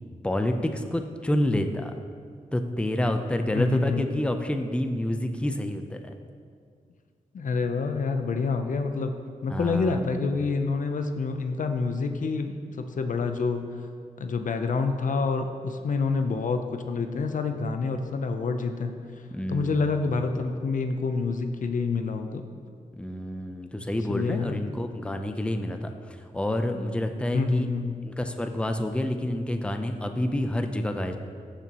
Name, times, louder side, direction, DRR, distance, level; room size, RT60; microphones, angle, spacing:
voice 1, 0.2-1.9 2.5-6.1 9.5-10.0 19.3-19.9 23.0-27.7 28.0-31.2, left 1 dB, 10° left, 6 dB, 0.6 m, -28 dB
voice 2, 3.5-4.0 7.3-13.8 14.2-19.0 19.5-22.4 24.1-24.6 27.3-28.0, left 4 dB, 65° left, 7 dB, 0.6 m, -27 dB
15.0 x 6.9 x 3.0 m, 2.2 s
wide cardioid pair, 85°, 14 cm